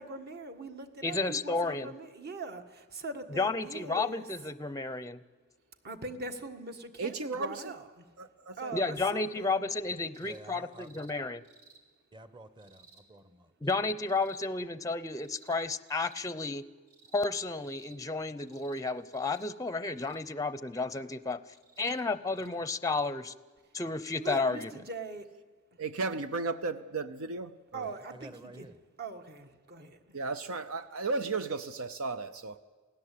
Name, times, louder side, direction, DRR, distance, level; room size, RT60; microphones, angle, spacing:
voice 1, 0.0-4.2 5.8-8.0 8.6-9.7 24.2-25.3 27.7-28.7 29.0-30.2, right 3 dB, 45° right, 1.8 m, -42 dB
voice 2, 1.0-1.9 3.3-5.2 8.7-11.4 13.6-16.6 17.1-21.4 21.8-23.3 23.7-24.7, left 3 dB, 15° left, 0.6 m, -32 dB
voice 3, 7.0-7.7 8.2-8.7 25.8-27.9 30.1-32.6, right 3 dB, 70° right, 0.8 m, -35 dB
sound 1, 10.1-10.4 10.7-11.1 11.4-11.8 12.6-13.0 14.0-14.5 15.1-15.6 15.9-16.2 16.9-17.3 17.6-18.0 18.5-18.8 19.1-19.5 20.0-20.2 21.5-22.0 22.3-22.5 23.6-23.7, right 4 dB, 85° right, 3.2 m, -59 dB
voice 4, 10.2-11.0 12.1-13.5 20.8-20.9 27.8-28.8, right 1 dB, 20° right, 1.1 m, -50 dB
27.5 x 17.5 x 8.5 m
head